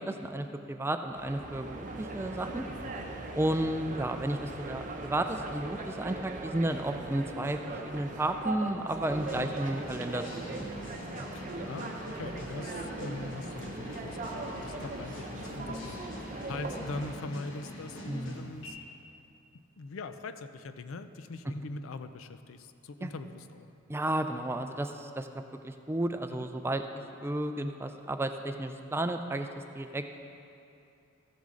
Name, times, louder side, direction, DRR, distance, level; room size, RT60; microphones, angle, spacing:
voice 1, 0.0-2.6 3.3-10.7 11.2-11.3 18.1-18.4 23.0-23.1 23.9-25.3 25.6-29.5 29.7-30.1, right 1 dB, 10° right, 7 dB, 0.3 m, -33 dB
sound 1, 1.1-17.2, right 2 dB, 40° right, 0.7 m, -40 dB
sound 2, 9.0-18.7, left 1 dB, 60° left, 1.4 m, -44 dB
voice 2, 11.3-16.0 16.5-18.8 19.5-23.7 26.4-26.5, left 3 dB, 80° left, 10 dB, 0.5 m, -42 dB
14.0 x 7.2 x 3.8 m, 2.7 s
head